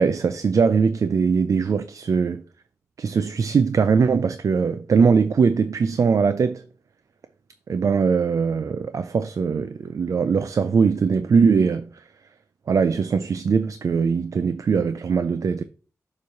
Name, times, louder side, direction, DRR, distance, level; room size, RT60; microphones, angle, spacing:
voice 1, 0.0-2.4 3.0-6.6 7.7-11.9 12.7-15.6, right 5 dB, 65° right, 0.4 m, -21 dB
7.0 x 3.2 x 5.7 m
wide cardioid pair, 130°, 6 cm